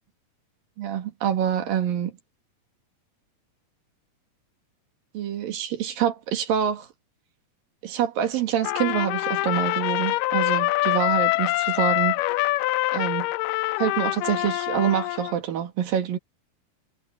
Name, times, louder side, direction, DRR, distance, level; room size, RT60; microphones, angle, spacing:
voice 1, 0.8-2.1 5.1-6.9 7.8-12.2 12.9-13.3 13.8-16.2, right 9 dB, 75° right, 3.6 m, -26 dB
Trumpet, 8.6-15.4, left 20 dB, 80° left, 2.0 m, -25 dB
omnidirectional pair, 4.1 m